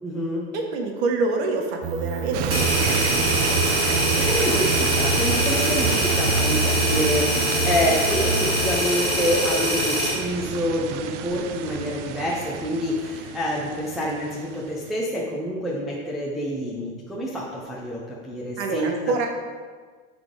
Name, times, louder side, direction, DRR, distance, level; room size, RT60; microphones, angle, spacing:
voice 1, 0.0-0.5 4.2-19.3, equal, ahead, -5 dB, 0.4 m, -27 dB
voice 2, 0.5-3.5 18.6-19.3, right 3 dB, 65° right, 2 dB, 1.6 m, -27 dB
sound 1, 1.8-8.8, right 3 dB, 50° right, 0.8 m, -28 dB
sound 2, 2.3-14.9, right 9 dB, 85° right, 0.7 m, -30 dB
sound 3, 2.5-10.2, equal, 15° right, 2.8 m, -24 dB
12.0 x 4.1 x 5.0 m, 1.5 s
supercardioid pair, 170°, 35 cm